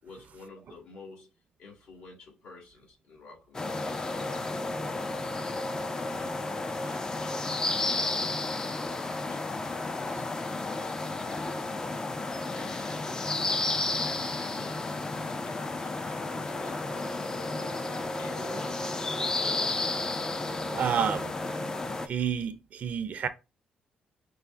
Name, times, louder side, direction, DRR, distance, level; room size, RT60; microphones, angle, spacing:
voice 1, 0.0-1.3 1.6-5.6 6.0-7.3 7.6-10.8 11.2-12.1 12.5-18.8, left 3 dB, 85° left, 2.4 m, -50 dB
sound 1, 3.5-22.1, left 2 dB, 25° left, 0.4 m, -32 dB
Singing, 17.4-22.5, right 7 dB, 90° right, 0.8 m, -50 dB
voice 2, 20.6-21.3 22.0-23.3, right 8 dB, 60° right, 0.5 m, -29 dB
4.9 x 2.0 x 3.4 m
cardioid pair, 90°, 3 cm